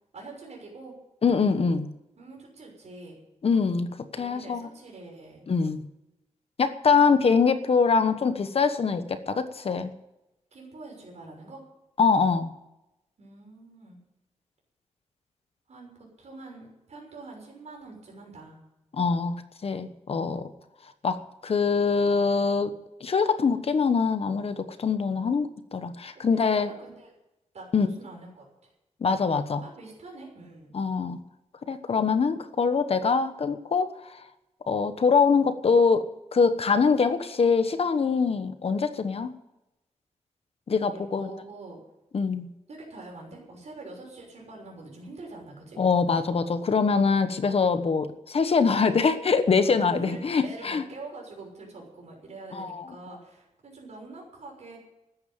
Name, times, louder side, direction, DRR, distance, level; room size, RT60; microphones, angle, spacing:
voice 1, 0.1-0.9 2.2-3.2 4.1-5.4 10.5-11.6 13.2-14.0 15.7-18.6 26.1-27.1 27.5-28.5 29.6-30.7 40.9-41.8 42.7-45.8 48.8-49.2 49.6-54.8, right 3 dB, 65° right, -1 dB, 6.4 m, -44 dB
voice 2, 1.2-1.9 3.4-4.7 5.5-5.9 6.6-9.9 12.0-12.5 18.9-19.4 19.6-20.5 21.0-22.7 23.0-26.7 27.7-27.9 29.0-29.6 30.7-31.2 31.7-33.9 34.7-36.1 36.3-39.3 40.7-41.3 42.1-42.5 45.8-50.8 52.5-52.9, left 5 dB, 50° left, 10 dB, 1.1 m, -24 dB
13.5 x 10.0 x 9.0 m, 0.92 s
wide cardioid pair, 155°, 12 cm